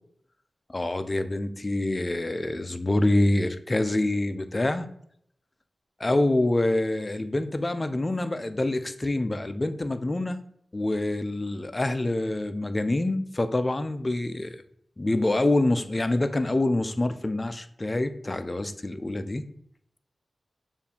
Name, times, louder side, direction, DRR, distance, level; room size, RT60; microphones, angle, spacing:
voice 1, 0.7-4.9 6.0-10.4 10.7-14.6 15.0-19.5, left 2 dB, 25° left, 10 dB, 0.3 m, -26 dB
6.7 x 2.5 x 2.7 m, 0.67 s
wide cardioid pair, 100°, 0 cm